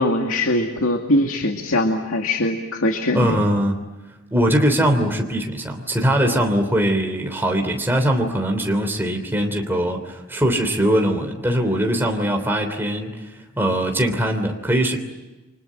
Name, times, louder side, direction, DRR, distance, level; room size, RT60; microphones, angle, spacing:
voice 1, 0.0-3.4, left 1 dB, 70° left, 3 dB, 2.3 m, -21 dB
voice 2, 3.1-3.7 4.3-15.0, right 1 dB, 10° right, 3 dB, 3.1 m, -21 dB
29.5 x 25.5 x 7.6 m, 1.1 s
head